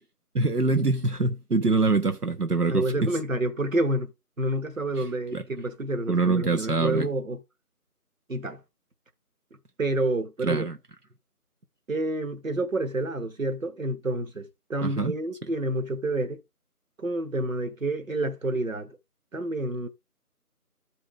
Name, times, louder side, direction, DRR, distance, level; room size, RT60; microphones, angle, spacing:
voice 1, 0.3-3.1 5.3-5.4 6.1-7.1 10.4-10.8 14.8-15.1, right 3 dB, 80° right, 1.2 m, -24 dB
voice 2, 2.7-4.1 4.4-7.4 8.3-8.6 9.8-10.7 11.9-16.4 17.0-19.0 19.3-19.9, right 1 dB, 60° right, 1.4 m, -28 dB
13.5 x 5.0 x 3.6 m
figure-of-eight pair, 165°, 46 cm